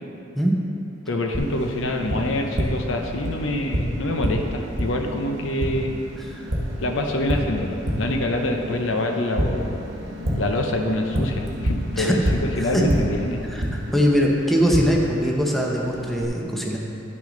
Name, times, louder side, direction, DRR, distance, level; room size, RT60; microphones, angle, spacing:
voice 1, 1.1-5.9 6.8-9.8 10.3-13.4, left 1 dB, 70° left, 3 dB, 0.7 m, -25 dB
Tap, 1.3-16.3, equal, 65° right, 1.2 m, -29 dB
voice 2, 13.5-16.8, equal, ahead, -2 dB, 0.7 m, -22 dB
9.9 x 6.2 x 3.8 m, 3.0 s
head